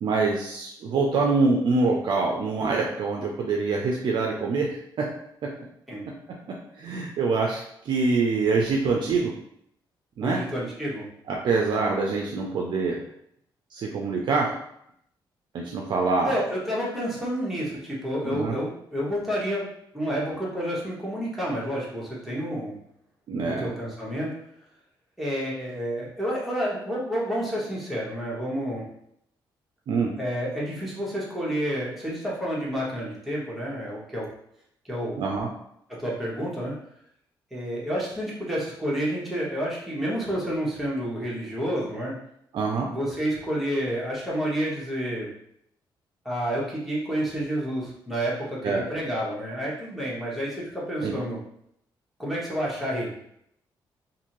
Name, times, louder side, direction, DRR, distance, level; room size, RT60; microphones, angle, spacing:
voice 1, 0.0-5.1 5.4-5.5 6.1-6.2 6.5-9.3 10.2-10.4 11.3-13.0 13.7-14.5 15.5-16.3 18.2-18.5 23.3-23.7 29.9-30.1 35.2-35.5 42.5-42.9 48.6-48.8 51.0-51.1, right 4 dB, 60° right, 0 dB, 0.4 m, -25 dB
voice 2, 10.2-11.0 16.2-19.7 19.9-22.7 23.4-24.3 25.2-28.8 30.2-34.3 34.8-35.2 35.9-36.7 37.5-42.1 42.9-45.3 46.2-51.4 52.2-53.1, equal, ahead, -6 dB, 1.1 m, -29 dB
2.6 x 2.6 x 2.9 m, 0.73 s
cardioid pair, 105°, 9 cm